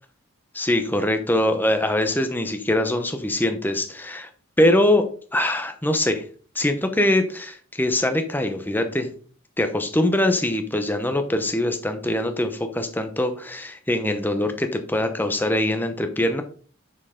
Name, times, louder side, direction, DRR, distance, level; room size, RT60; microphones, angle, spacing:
voice 1, 0.5-4.3 4.6-5.1 5.3-6.2 6.5-9.1 9.6-16.4, left 1 dB, 10° left, 7 dB, 0.8 m, -23 dB
7.6 x 6.4 x 3.7 m, 0.43 s
head